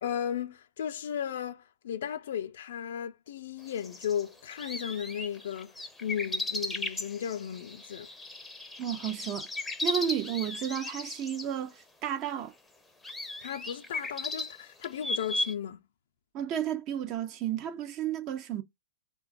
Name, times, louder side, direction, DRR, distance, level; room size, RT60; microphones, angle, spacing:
voice 1, 0.0-5.7 6.0-8.1 13.4-15.8, left 9 dB, 60° left, 0.5 m, -35 dB
sound 1, 3.7-11.5 12.3-12.4 13.0-15.5, left 2 dB, 10° left, 0.6 m, -36 dB
voice 2, 8.8-9.5 9.8-12.5 16.3-18.6, right 10 dB, 35° right, 0.5 m, -32 dB
3.8 x 2.2 x 2.5 m
hypercardioid pair, 110°, 0 cm